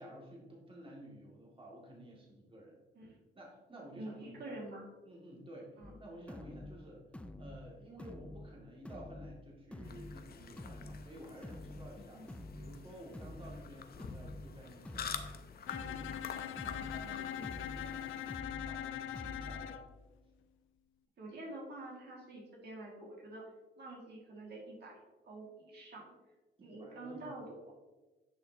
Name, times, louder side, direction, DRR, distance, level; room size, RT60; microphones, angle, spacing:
voice 1, 0.0-2.8 3.4-4.6 5.0-7.1 7.4-15.3 15.6-18.2 18.7-19.9 26.6-27.5, right 1 dB, 25° right, -3 dB, 2.3 m, -53 dB
voice 2, 3.9-4.9 5.8-6.0 12.1-12.3 17.3-17.5 21.2-23.4 23.8-25.0 25.2-26.1 26.6-27.7, right 2 dB, 55° right, -2 dB, 2.1 m, -47 dB
sound 1, 5.8-19.8, left 1 dB, 5° left, 0.5 m, -49 dB
sound 2, 9.8-18.4, left 7 dB, 50° left, 0.7 m, -48 dB
Bowed string instrument, 15.7-19.9, left 11 dB, 85° left, 0.5 m, -42 dB
10.0 x 5.9 x 2.8 m, 1.2 s
cardioid pair, 90°, 20 cm